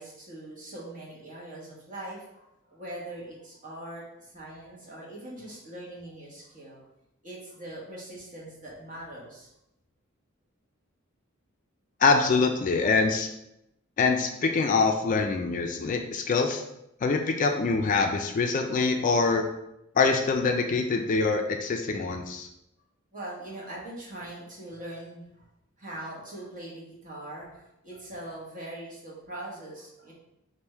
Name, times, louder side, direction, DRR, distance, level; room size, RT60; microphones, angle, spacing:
voice 1, 0.0-6.8 7.2-9.5 23.1-25.4 25.8-30.1, right 1 dB, 40° right, -4 dB, 1.2 m, -42 dB
voice 2, 12.0-13.3 14.0-16.6 17.0-19.4 20.0-22.5, left 4 dB, 40° left, 4 dB, 0.3 m, -24 dB
3.5 x 2.6 x 4.3 m, 0.83 s
head